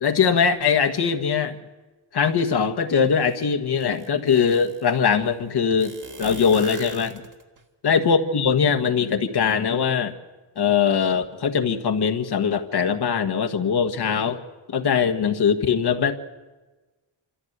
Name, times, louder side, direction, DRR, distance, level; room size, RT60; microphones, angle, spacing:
voice 1, 0.0-1.5 2.1-7.2 7.8-10.1 10.6-14.4 14.7-16.2, left 6 dB, 60° left, 6 dB, 1.6 m, -21 dB
sound 1, 3.3-3.4 3.8-4.9 5.8-7.6, right 4 dB, 45° right, 2.5 m, -40 dB
25.5 x 14.5 x 8.1 m, 1.2 s
cardioid pair, 80°, 44 cm